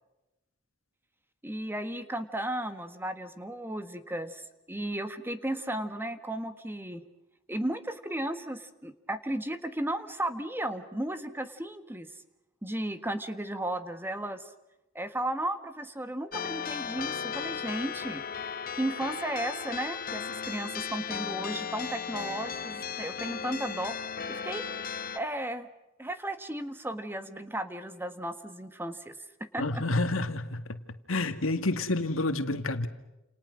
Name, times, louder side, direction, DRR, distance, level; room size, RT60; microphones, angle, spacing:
voice 1, 1.4-7.0 7.5-12.1 12.6-14.5 14.9-18.2 18.7-24.0 24.3-24.7 25.1-25.7 26.0-29.1 29.5-29.8, right 1 dB, 10° right, 1.6 m, -34 dB
sound 1, 16.3-25.2, left 7 dB, 45° left, 1.3 m, -36 dB
voice 2, 29.6-30.8 31.1-32.9, left 2 dB, 85° left, 2.1 m, -29 dB
30.0 x 28.5 x 6.3 m
head